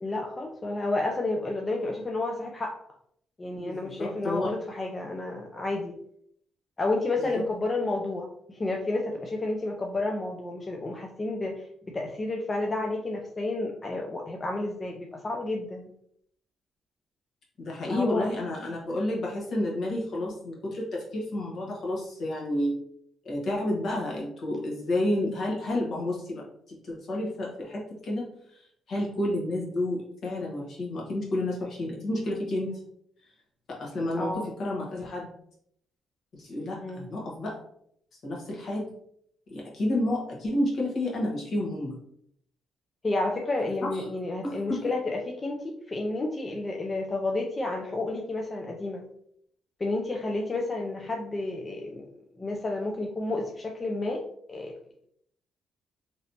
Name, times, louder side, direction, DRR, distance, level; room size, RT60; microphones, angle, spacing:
voice 1, 0.0-2.8 3.4-6.0 6.8-15.9 17.7-18.3 34.2-34.5 36.8-37.1 43.0-49.0 49.8-52.1 52.4-54.2 54.5-54.7, left 2 dB, 30° left, 1 dB, 0.4 m, -31 dB
voice 2, 3.5-4.5 17.6-22.8 23.2-28.3 28.9-32.8 33.7-35.3 36.3-37.6 38.2-38.9 39.5-42.0 43.8-44.1 44.4-44.8, left 1 dB, 60° left, -3 dB, 1.3 m, -30 dB
3.1 x 2.9 x 2.8 m, 0.69 s
cardioid pair, 90°, 0 cm